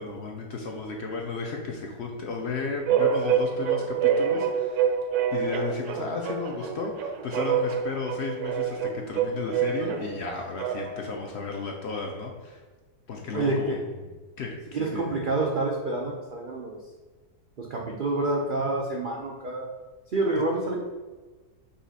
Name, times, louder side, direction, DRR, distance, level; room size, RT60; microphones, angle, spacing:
voice 1, 0.0-4.9 5.3-12.6 13.1-13.7 14.0-14.1 14.4-15.1, left 4 dB, 70° left, 1 dB, 0.6 m, -34 dB
sound 1, 2.9-11.1, right 7 dB, 75° right, 1.0 m, -27 dB
voice 2, 13.3-13.8 14.7-16.8 17.6-19.7 20.1-20.8, right 2 dB, 90° right, -2 dB, 0.4 m, -28 dB
5.3 x 2.4 x 4.0 m, 1.3 s
omnidirectional pair, 1.7 m